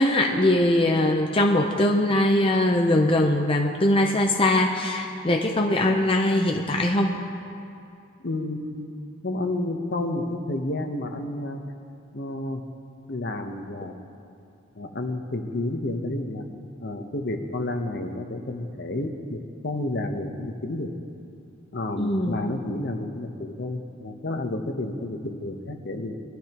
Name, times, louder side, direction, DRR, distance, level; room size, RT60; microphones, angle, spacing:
voice 1, 0.0-7.1 22.0-22.4, left 1 dB, 25° left, 1 dB, 0.6 m, -21 dB
voice 2, 8.2-8.9 9.2-11.6 12.1-12.6 13.1-14.0 14.7-16.4 16.8-20.9 21.7-26.2, left 2 dB, 55° left, 5 dB, 0.9 m, -30 dB
20.5 x 12.5 x 3.0 m, 2.6 s
head